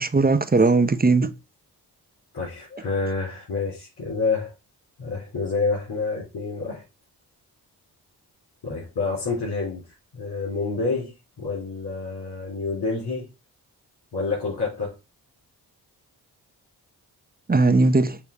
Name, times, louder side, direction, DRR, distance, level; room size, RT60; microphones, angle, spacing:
voice 1, 0.0-1.3 17.5-18.2, right 3 dB, 20° right, 0.8 m, -18 dB
voice 2, 2.3-4.5 5.0-6.8 8.6-13.3 14.1-15.0, left 4 dB, 75° left, 3.9 m, -28 dB
7.1 x 3.1 x 4.8 m
cardioid pair, 55°, 40 cm